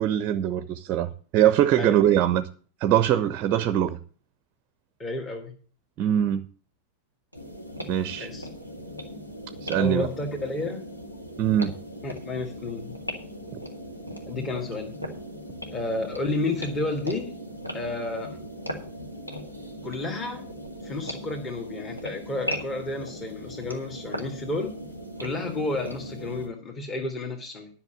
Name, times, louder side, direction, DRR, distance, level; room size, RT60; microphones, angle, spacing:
voice 1, 0.0-2.5 2.8-4.0 6.0-6.4 7.9-8.3 9.6-10.1 11.4-11.7, right 11 dB, 40° right, 0.6 m, -22 dB
voice 2, 5.0-5.5 8.2-8.5 9.8-10.9 12.0-12.9 14.3-14.9 15.7-17.3 17.7-18.4 19.8-20.5 20.8-24.7 25.2-27.7, left 2 dB, 25° left, 1.9 m, -31 dB
sound 1, 7.3-26.5, equal, 85° left, 1.7 m, -38 dB
10.5 x 6.0 x 7.6 m
figure-of-eight pair, 90°, 0 cm